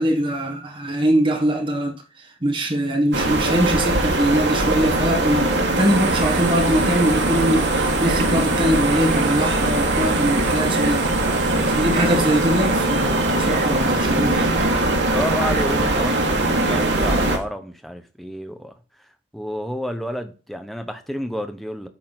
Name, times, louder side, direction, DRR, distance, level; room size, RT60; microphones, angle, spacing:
voice 1, 0.0-1.9 2.4-11.1 11.7-14.6, equal, 30° right, 1.6 m, -22 dB
sound 1, 3.1-17.4, right 2 dB, 80° right, 1.6 m, -21 dB
sound 2, 5.8-17.5, right 5 dB, 45° right, 0.9 m, -35 dB
voice 2, 15.1-18.7 19.3-21.9, equal, ahead, 0.8 m, -30 dB
8.7 x 3.7 x 6.0 m
head